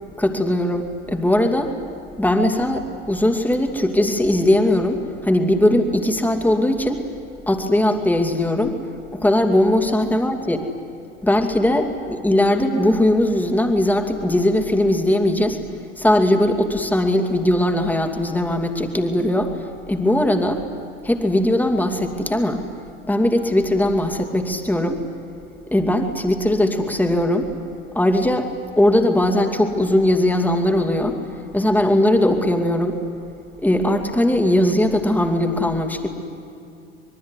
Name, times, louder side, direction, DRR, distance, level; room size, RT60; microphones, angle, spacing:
voice 1, 0.2-1.7 2.2-7.0 7.5-8.8 9.1-10.6 11.2-15.6 16.0-20.6 21.0-22.6 23.1-25.0 25.7-27.5 27.9-28.5 28.8-31.2 31.5-33.0 33.6-36.1, left 1 dB, 5° left, 4 dB, 2.7 m, -19 dB
26.0 x 22.5 x 9.8 m, 2.7 s
figure-of-eight pair, 70°, 36 cm